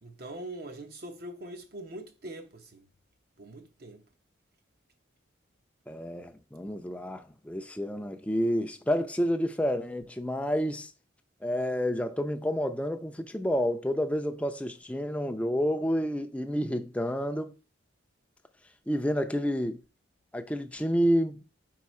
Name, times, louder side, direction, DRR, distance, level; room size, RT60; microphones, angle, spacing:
voice 1, 0.0-2.8 3.4-4.0, right 1 dB, 50° right, 0.8 m, -42 dB
voice 2, 5.9-10.9 11.4-17.5 18.9-19.8 20.3-21.4, equal, 5° left, 0.5 m, -29 dB
4.8 x 4.7 x 4.3 m
head